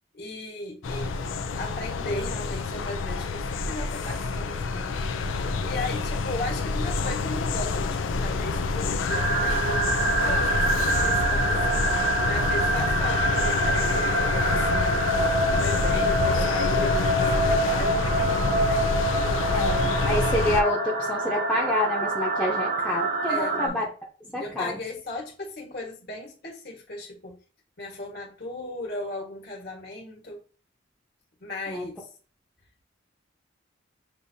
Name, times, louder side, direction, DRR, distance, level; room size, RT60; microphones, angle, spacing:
voice 1, 0.1-1.2 1.6-5.1 5.6-11.9 12.2-15.0 15.5-19.6 23.3-23.9 24.4-27.4 27.8-30.4 31.4-31.9, left 2 dB, 55° left, 1.5 m, -37 dB
sound 1, 0.8-20.6, left 3 dB, 85° left, 0.5 m, -27 dB
sound 2, 9.1-23.7, right 2 dB, 45° right, 0.8 m, -26 dB
voice 2, 19.5-23.8 24.3-24.7 31.7-31.8, left 1 dB, 5° left, 0.8 m, -28 dB
6.6 x 2.7 x 2.7 m
head